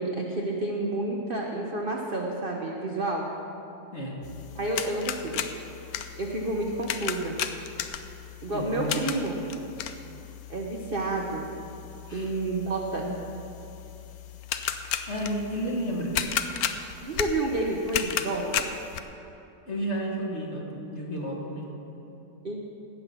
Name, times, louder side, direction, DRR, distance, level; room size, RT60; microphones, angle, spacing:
voice 1, 0.0-3.2 4.5-5.4 6.2-7.4 8.4-9.4 10.5-11.5 12.1-13.1 17.0-18.7 22.4-22.6, right 2 dB, 45° right, -1 dB, 0.8 m, -30 dB
sound 1, 4.2-19.0, left 9 dB, 70° left, 0.9 m, -35 dB
voice 2, 8.5-8.9 12.1-12.3 13.0-13.1 15.1-16.1 19.7-21.7, equal, 35° left, -2 dB, 2.0 m, -32 dB
17.0 x 5.8 x 6.9 m, 2.9 s
omnidirectional pair, 2.0 m